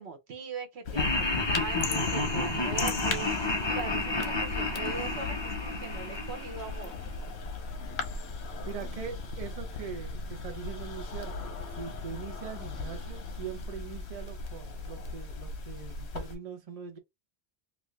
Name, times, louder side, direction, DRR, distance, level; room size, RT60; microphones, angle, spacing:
voice 1, 0.0-3.3 3.7-7.0, right 4 dB, 85° right, 1.2 m, -40 dB
sound 1, 0.8-16.4, left 3 dB, 85° left, 1.2 m, -38 dB
Laughter, 1.0-7.1, left 2 dB, 25° left, 0.8 m, -31 dB
sound 2, 1.8-4.2 4.7-6.4 6.8-9.3 9.7-10.4, left 9 dB, 70° left, 0.8 m, -43 dB
voice 2, 8.6-17.0, right 6 dB, 40° right, 0.8 m, -42 dB
3.0 x 2.6 x 3.2 m
omnidirectional pair, 1.1 m